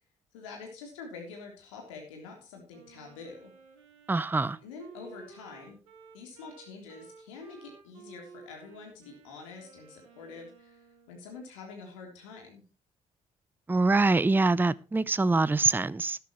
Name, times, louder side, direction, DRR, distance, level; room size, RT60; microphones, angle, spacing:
voice 1, 0.3-3.5 4.6-5.8 6.1-12.6, left 4 dB, 75° left, 3.4 m, -46 dB
Wind instrument woodwind instrument, 2.7-11.2, right 5 dB, 80° right, 2.4 m, -54 dB
voice 2, 4.1-4.6 13.7-16.2, right 3 dB, 10° right, 0.6 m, -24 dB
13.5 x 12.0 x 3.1 m
figure-of-eight pair, 45°, 16 cm